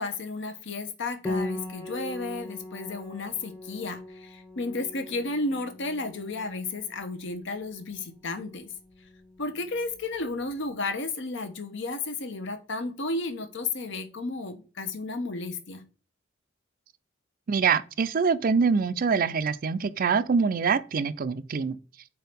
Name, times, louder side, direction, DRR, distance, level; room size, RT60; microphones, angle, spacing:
voice 1, 0.0-8.7 9.4-15.8, left 3 dB, 65° left, 0.9 m, -33 dB
Piano, 1.2-10.6, left 2 dB, 15° left, 0.9 m, -40 dB
voice 2, 17.5-21.8, right 5 dB, 45° right, 0.4 m, -24 dB
4.6 x 4.4 x 5.1 m
head